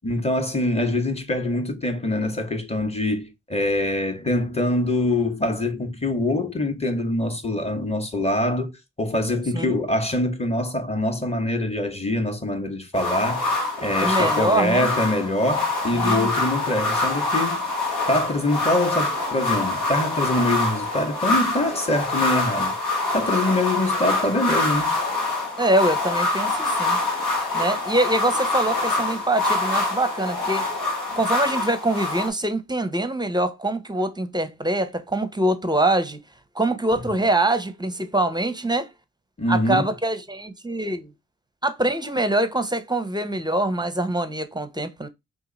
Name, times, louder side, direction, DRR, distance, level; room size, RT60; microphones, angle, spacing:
voice 1, 0.0-13.5 13.8-17.6 18.1-22.8 23.1-24.9 39.4-39.9, left 1 dB, 15° left, 1.0 m, -24 dB
sound 1, 12.9-32.3, left 2 dB, 85° left, 1.3 m, -25 dB
voice 2, 14.0-14.9 15.9-16.3 25.6-27.0 27.5-30.6 31.2-36.2 36.5-38.9 39.5-41.1 41.6-45.1, right 1 dB, 10° right, 0.7 m, -24 dB
2.8 x 2.5 x 3.8 m
supercardioid pair, 45°, 36 cm